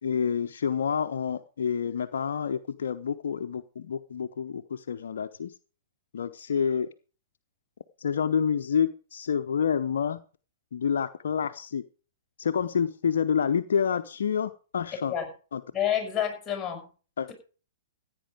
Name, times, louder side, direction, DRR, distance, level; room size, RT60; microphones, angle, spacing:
voice 1, 0.0-5.5 6.1-6.9 8.0-10.2 10.7-11.8 12.4-15.1 15.5-15.6 17.2-17.3, left 7 dB, 65° left, 9 dB, 0.8 m, -28 dB
voice 2, 15.7-16.9, left 10 dB, 15° left, 4 dB, 6.3 m, -28 dB
15.5 x 9.1 x 5.0 m, 0.38 s
figure-of-eight pair, 115°, 0 cm